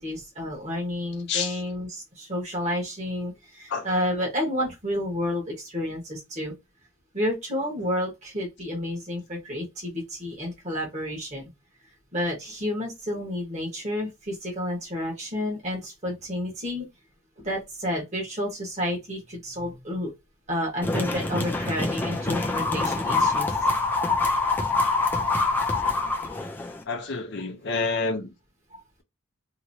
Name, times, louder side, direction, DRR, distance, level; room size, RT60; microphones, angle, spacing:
voice 1, 0.0-6.5 7.1-11.5 12.1-16.8 17.4-20.1 20.5-23.6, left 1 dB, 30° right, 1.3 m, -30 dB
voice 2, 1.3-1.6 3.7-3.9 26.8-28.3, left 4 dB, 55° left, 0.6 m, -28 dB
sound 1, 20.8-26.8, left 3 dB, 10° left, 0.4 m, -25 dB
2.9 x 2.7 x 2.7 m
head